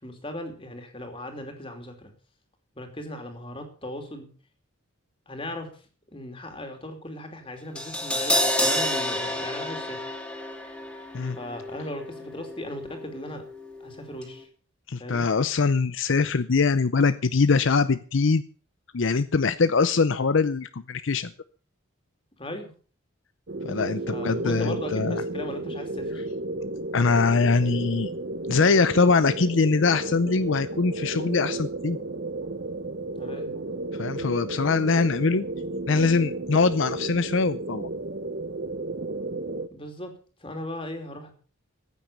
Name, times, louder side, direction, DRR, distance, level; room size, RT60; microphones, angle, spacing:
voice 1, 0.0-2.1 2.8-4.3 5.3-5.8 6.1-10.1 11.3-13.4 13.8-14.5 15.0-15.3 22.4-22.7 24.1-26.3 33.1-33.5 39.7-40.1 40.4-41.3, left 1 dB, 25° left, 5 dB, 2.9 m, -37 dB
Crash cymbal, 7.8-13.9 14.2-14.3, left 1 dB, 5° left, 2.8 m, -29 dB
voice 2, 14.9-18.4 18.9-21.3 23.6-25.2 26.9-28.1 28.5-32.0 33.9-35.4 35.9-37.9, left 4 dB, 65° left, 13 dB, 0.6 m, -23 dB
sound 1, 23.5-39.7, right 2 dB, 50° right, 0.9 m, -33 dB
15.0 x 9.2 x 6.9 m, 0.41 s
head